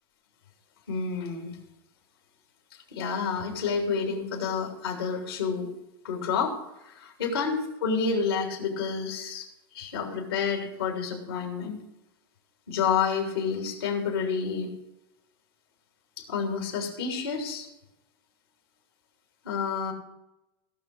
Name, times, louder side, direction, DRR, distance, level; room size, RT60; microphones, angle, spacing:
voice 1, 0.9-1.6 2.9-5.7 6.0-6.5 6.8-9.5 9.7-11.8 12.7-14.7 16.2-17.7 19.4-19.9, left 5 dB, 90° left, 1 dB, 3.1 m, -29 dB
17.5 x 6.1 x 6.4 m, 0.91 s
hypercardioid pair, 100°, 12 cm